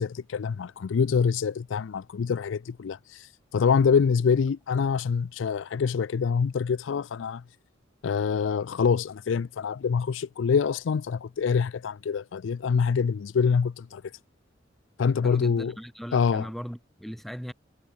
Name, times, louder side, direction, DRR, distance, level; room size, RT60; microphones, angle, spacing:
voice 1, 0.0-3.3 3.5-7.4 8.0-14.0 15.0-15.7 16.1-16.5, left 6 dB, 80° left, 0.4 m, -25 dB
voice 2, 15.2-17.5, equal, ahead, 5.5 m, -38 dB
head